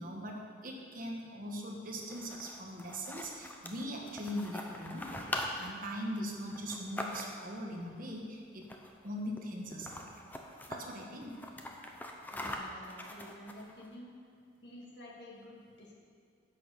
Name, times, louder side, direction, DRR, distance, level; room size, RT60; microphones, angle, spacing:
voice 1, 0.0-8.7 9.0-10.1 10.7-11.4, equal, 45° right, 0 dB, 1.3 m, -41 dB
sound 1, 1.9-7.6 8.6-9.1 9.4-9.5 9.7-10.8 11.2-13.9, left 1 dB, 10° left, 0.7 m, -42 dB
voice 2, 12.3-14.2 14.6-15.9, left 1 dB, 60° left, -3 dB, 2.1 m, -50 dB
10.5 x 6.2 x 6.7 m, 2.3 s
head